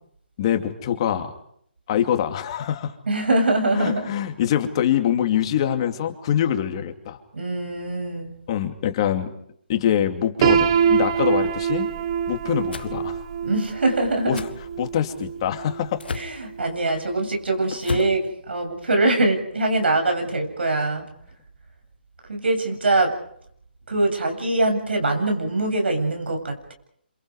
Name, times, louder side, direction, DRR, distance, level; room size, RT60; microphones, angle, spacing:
voice 1, 0.4-1.3 1.9-2.9 3.8-7.2 8.5-9.3 9.7-11.9 12.3-13.2 14.3-14.4 14.8-16.0 17.9-18.0, left 10 dB, 30° left, 6 dB, 2.7 m, -24 dB
voice 2, 3.1-4.0 7.3-8.3 13.4-14.4 16.1-21.1 22.3-23.1 23.9-26.7, right 2 dB, 85° right, 3 dB, 7.9 m, -23 dB
Piano, 10.4-16.3, right 7 dB, 30° right, 1.4 m, -24 dB
sound 1, 12.7-12.9 14.3-14.5 16.0-16.4 17.8-18.2, left 5 dB, 70° left, 1.7 m, -30 dB
29.5 x 27.0 x 4.9 m, 0.68 s
hypercardioid pair, 165°, 6 cm